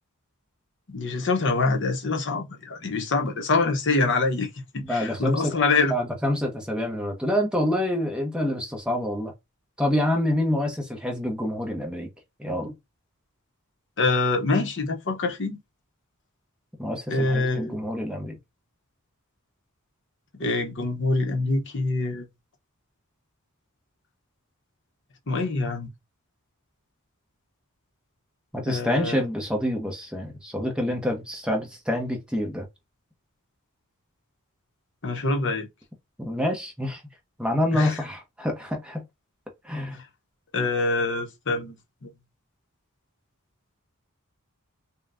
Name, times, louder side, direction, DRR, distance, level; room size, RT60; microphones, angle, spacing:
voice 1, 0.9-5.9 14.0-15.6 17.1-17.8 20.4-22.3 25.3-25.9 28.7-29.2 35.0-35.7 37.7-38.0 40.5-41.8 42.0-42.1, left 3 dB, 60° left, 0.9 m, -25 dB
voice 2, 4.8-5.5 5.9-9.3 9.8-12.1 12.4-12.7 16.8-18.4 28.5-32.6 36.2-37.0 37.4-39.0 39.6-40.0, left 1 dB, 5° right, 0.9 m, -27 dB
5.3 x 2.3 x 2.6 m
head